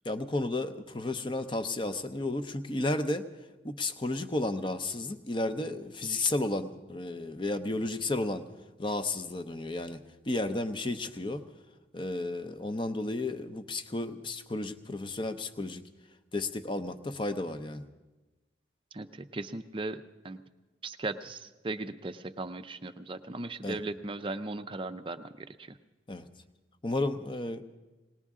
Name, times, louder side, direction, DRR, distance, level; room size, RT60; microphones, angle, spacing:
voice 1, 0.0-3.2 3.6-8.4 8.8-10.0 10.3-11.4 11.9-15.8 16.3-17.8 23.6-23.8 26.1-26.3 26.8-27.6, left 2 dB, 25° left, 9 dB, 0.6 m, -32 dB
voice 2, 18.9-20.4 20.8-25.7, right 2 dB, 30° right, 10 dB, 0.5 m, -38 dB
19.5 x 18.5 x 3.7 m, 1.1 s
head